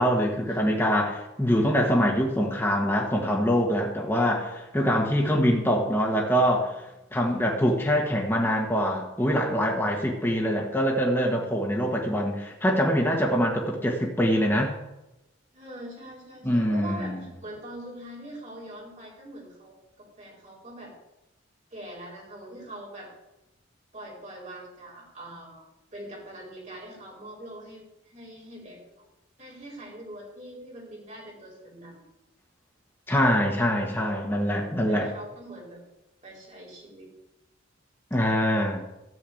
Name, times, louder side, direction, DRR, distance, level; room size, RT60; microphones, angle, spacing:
voice 1, 0.0-6.8 7.1-14.7 16.4-17.2 33.1-35.1 38.1-38.8, equal, 10° left, 0 dB, 1.4 m, -24 dB
voice 2, 15.5-20.9 21.7-23.1 23.9-28.8 29.4-32.0 34.9-35.8 36.2-37.1, right 1 dB, 35° right, -3 dB, 4.3 m, -43 dB
13.5 x 4.7 x 8.4 m, 0.96 s
head